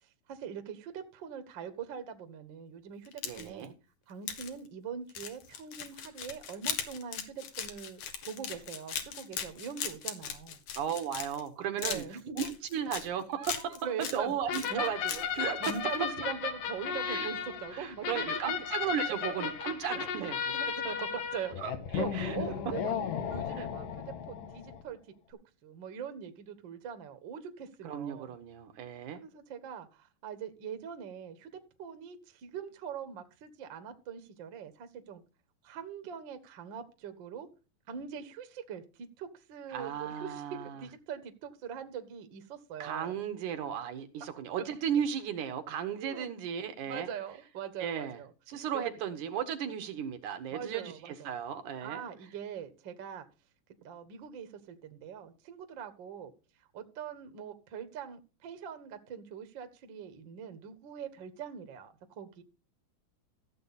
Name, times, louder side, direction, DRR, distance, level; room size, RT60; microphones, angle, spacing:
voice 1, 0.0-3.7 4.1-8.0 8.3-10.6 11.8-12.4 13.8-14.3 14.7-14.9 15.6-18.5 20.0-20.1 20.5-22.9 23.2-25.0 25.3-28.3 29.1-35.2 35.6-37.5 37.9-43.1 46.0-46.3 46.8-48.3 48.7-48.9 50.5-51.3 51.8-53.3 53.8-56.3 56.7-62.4, right 7 dB, 50° right, 1.6 m, -42 dB
sound 1, 3.0-3.7 4.3-4.5 5.1-11.5 11.8-13.1 13.4-14.2 14.5-15.4 15.6-15.8, left 8 dB, 70° left, 2.9 m, -38 dB
voice 2, 3.2-3.7 10.8-12.0 12.4-15.9 17.1-17.3 17.7-20.6 21.6-22.4 23.5-23.7 27.8-29.2 39.7-40.8 42.8-47.1 47.8-48.2 48.5-52.1, right 8 dB, 70° right, 2.5 m, -35 dB
sound 2, 14.5-24.8, left 7 dB, 85° left, 3.1 m, -35 dB
15.0 x 7.8 x 4.1 m
omnidirectional pair, 3.7 m